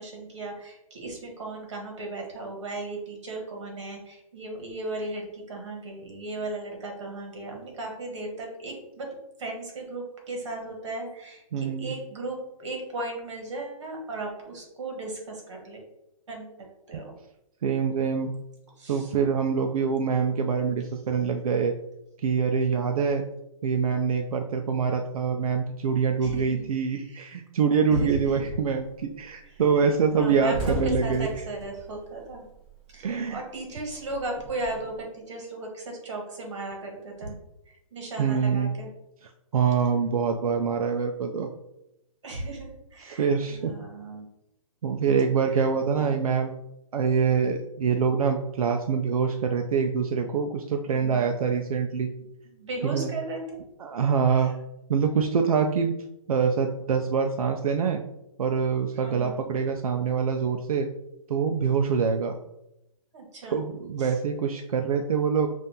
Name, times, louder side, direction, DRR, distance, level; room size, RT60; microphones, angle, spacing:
voice 1, 0.0-9.1 9.4-15.8 16.3-16.5 16.9-17.1 18.8-19.1 19.9-20.2 22.7-23.0 26.2-27.4 27.9-28.5 29.4-32.4 32.9-37.4 37.7-38.9 42.2-44.2 45.4-46.2 50.9-51.3 52.1-52.3 52.5-53.6 54.3-54.5 59.0-59.4 63.1-63.6 64.0-64.2, right 2 dB, 55° right, 1 dB, 1.4 m, -36 dB
voice 2, 11.5-11.9 16.9-17.0 17.6-18.3 18.9-21.7 22.2-23.2 23.6-31.3 33.0-33.4 38.2-38.8 39.5-41.5 43.0-43.7 44.8-46.6 46.9-52.1 52.8-53.1 53.8-54.5 54.9-55.9 56.3-58.0 58.4-60.9 61.3-62.4 63.5-65.5, right 6 dB, 90° right, 4 dB, 0.5 m, -25 dB
sound 1, 28.4-28.8 29.1-29.3 29.6-29.7 30.0-33.0 33.3-35.0, equal, 15° right, 1.0 m, -35 dB
5.2 x 2.5 x 2.8 m, 0.88 s
hypercardioid pair, 175°, 18 cm